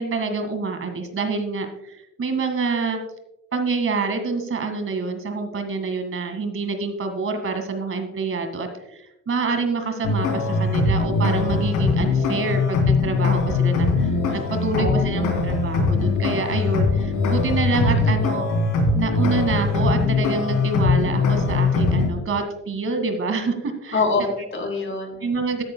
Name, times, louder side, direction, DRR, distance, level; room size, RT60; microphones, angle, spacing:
voice 1, 0.0-3.0 3.5-18.5 18.9-24.0 25.2-25.6, right 4 dB, 45° right, 6 dB, 2.0 m, -27 dB
sound 1, 10.0-22.1, left 3 dB, 85° left, 3.5 m, -21 dB
voice 2, 14.7-15.1 17.9-18.3 23.9-25.3, left 3 dB, 45° left, 3 dB, 3.4 m, -26 dB
15.5 x 10.5 x 2.2 m, 0.87 s
cardioid pair, 90°, 30 cm